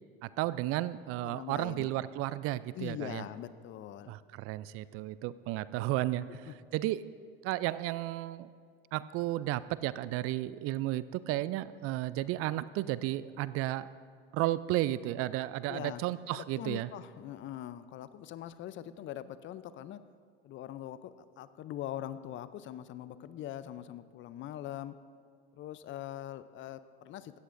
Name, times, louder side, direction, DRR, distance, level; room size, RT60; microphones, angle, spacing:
voice 1, 0.2-3.2 4.1-7.0 7.4-8.5 8.9-13.9 14.3-16.9, right 15 dB, 50° right, 17 dB, 0.4 m, -33 dB
voice 2, 1.2-1.9 2.7-4.2 6.3-6.5 15.7-16.0 16.3-20.0 20.4-24.9 25.5-27.4, left 12 dB, 40° left, 14 dB, 0.5 m, -42 dB
16.0 x 14.0 x 2.6 m, 2.1 s
hypercardioid pair, 80°, 29 cm